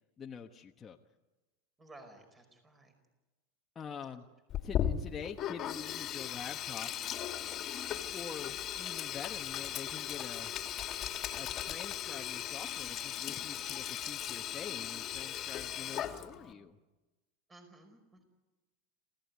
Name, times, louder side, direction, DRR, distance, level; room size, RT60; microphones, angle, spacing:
voice 1, 0.2-1.0 3.7-4.2 4.6-7.1 8.1-10.5 11.4-16.8, left 7 dB, 25° left, 2 dB, 1.2 m, -46 dB
voice 2, 1.8-2.9 17.5-18.4, right 2 dB, 15° right, 6 dB, 5.0 m, -56 dB
Sink (filling or washing), 4.5-16.5, left 11 dB, 40° left, 2.1 m, -37 dB
28.0 x 16.0 x 9.5 m, 1.2 s
supercardioid pair, 115°, 0 cm